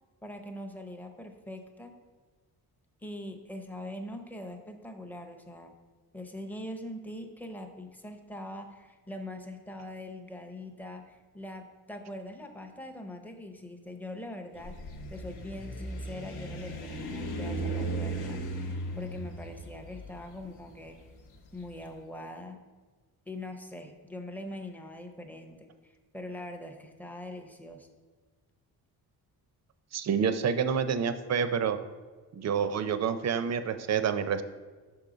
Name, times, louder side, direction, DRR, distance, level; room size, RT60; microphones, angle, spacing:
voice 1, 0.2-1.9 3.0-5.7 6.1-14.8 15.1-21.1 21.5-22.6 23.3-27.9, left 1 dB, 5° left, 5 dB, 0.5 m, -42 dB
sound 1, 14.5-21.7, right 1 dB, 75° left, 0.9 m, -37 dB
voice 2, 29.9-31.8 32.3-34.4, right 7 dB, 45° right, 10 dB, 0.4 m, -28 dB
6.2 x 3.8 x 4.9 m, 1.4 s
cardioid pair, 115°, 39 cm